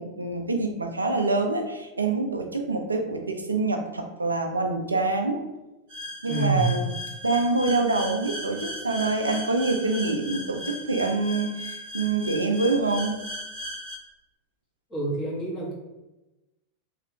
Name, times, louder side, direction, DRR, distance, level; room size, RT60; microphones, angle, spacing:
voice 1, 0.0-5.4 6.2-6.9 7.2-13.2, right 3 dB, 80° right, 4 dB, 0.3 m, -26 dB
sound 1, 5.9-14.0, left 1 dB, 55° right, 0.7 m, -37 dB
voice 2, 6.3-6.6 14.9-15.7, right 3 dB, 20° left, -5 dB, 1.2 m, -27 dB
3.1 x 2.8 x 2.3 m, 1.0 s
figure-of-eight pair, 90°, 0 cm